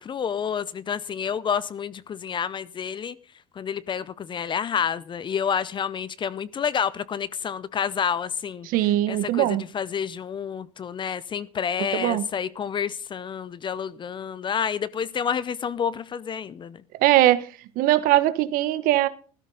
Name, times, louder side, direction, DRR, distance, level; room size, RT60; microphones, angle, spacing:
voice 1, 0.0-3.2 3.6-8.7 9.1-16.8, left 7 dB, 30° left, 0.6 m, -29 dB
voice 2, 8.6-9.6 11.9-12.2 17.0-17.5 17.8-19.1, right 14 dB, 60° right, 1.1 m, -20 dB
15.5 x 13.0 x 3.9 m
supercardioid pair, 95°, 17 cm